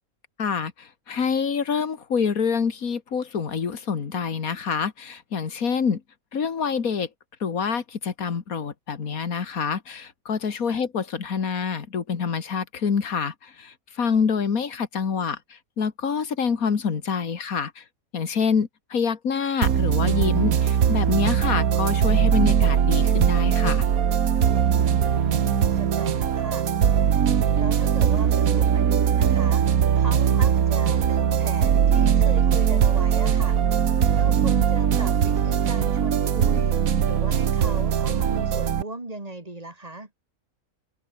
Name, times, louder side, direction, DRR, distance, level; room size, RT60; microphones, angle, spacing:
voice 1, 0.4-6.0 6.3-7.1 7.4-17.8 18.1-23.9, left 6 dB, 80° left, 2.3 m, -26 dB
sound 1, 19.6-38.8, right 8 dB, 75° right, 1.6 m, -20 dB
voice 2, 24.7-26.7 27.5-29.6 30.0-33.6 34.2-36.8 37.1-40.1, right 2 dB, 25° right, 2.8 m, -37 dB
omnidirectional pair, 1.5 m